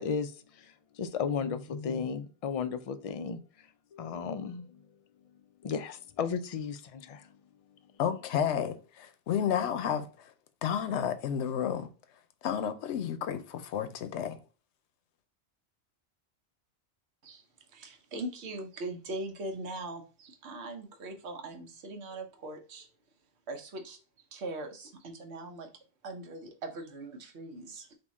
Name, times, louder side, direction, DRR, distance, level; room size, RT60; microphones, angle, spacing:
voice 1, 0.0-3.4 3.9-4.8 5.6-7.3, left 6 dB, 65° left, 0.3 m, -34 dB
voice 2, 8.0-10.1 10.6-11.9 12.4-14.4, left 8 dB, 85° left, 0.9 m, -31 dB
voice 3, 17.2-22.9 23.5-24.0 24.3-25.7 26.0-27.9, right 2 dB, 80° right, 1.1 m, -41 dB
3.6 x 2.8 x 4.0 m
omnidirectional pair, 1.1 m